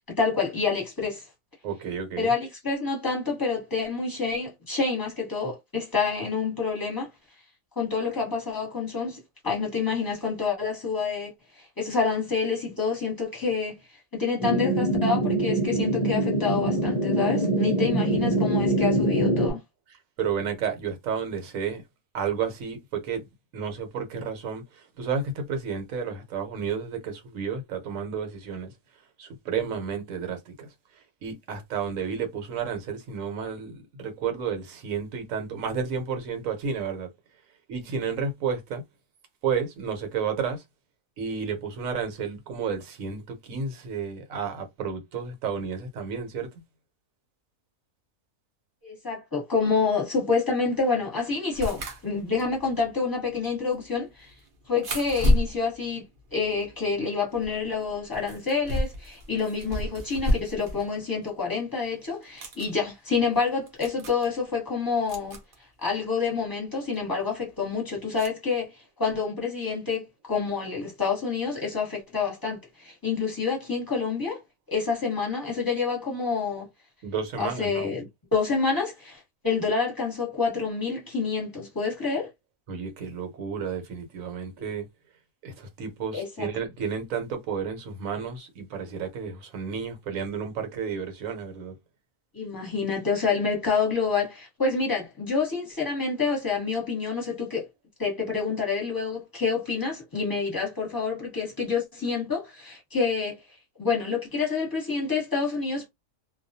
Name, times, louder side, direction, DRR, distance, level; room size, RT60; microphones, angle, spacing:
voice 1, 0.2-1.2 2.2-7.1 7.8-11.3 11.8-13.8 14.1-19.6 48.8-54.3 54.7-56.0 56.3-65.4 65.8-68.7 69.0-74.4 74.7-76.7 77.4-82.3 86.1-86.5 92.3-97.7 98.0-103.4 103.8-105.9, left 5 dB, 15° left, 1.0 m, -28 dB
voice 2, 1.6-2.3 20.2-21.8 22.1-23.2 23.5-28.7 29.2-30.7 31.2-37.1 37.7-38.8 39.4-40.6 41.2-46.5 77.0-77.9 82.7-84.8 85.4-91.7, right 6 dB, 65° right, 1.1 m, -31 dB
sound 1, 14.4-19.5, right 1 dB, 40° left, 0.5 m, -24 dB
sound 2, 51.5-57.0 57.3-60.9 61.2-61.3 62.1-62.7 63.4-63.5 63.7-64.3 65.1-65.5 66.9-67.0 68.2-68.3, left 1 dB, 45° right, 0.8 m, -30 dB
2.4 x 2.3 x 2.6 m
omnidirectional pair, 1.6 m